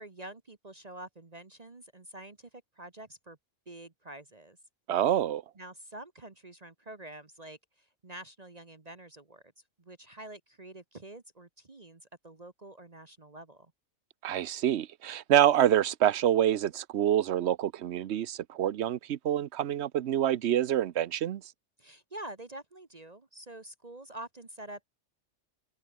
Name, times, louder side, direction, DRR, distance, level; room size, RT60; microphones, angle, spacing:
voice 1, 0.0-3.4 3.7-4.6 5.5-9.5 9.8-13.7 21.8-24.8, right 1 dB, 30° right, 1.4 m, -47 dB
voice 2, 4.9-5.4 14.2-21.4, right 11 dB, 65° right, 0.9 m, -26 dB
omnidirectional pair, 1.3 m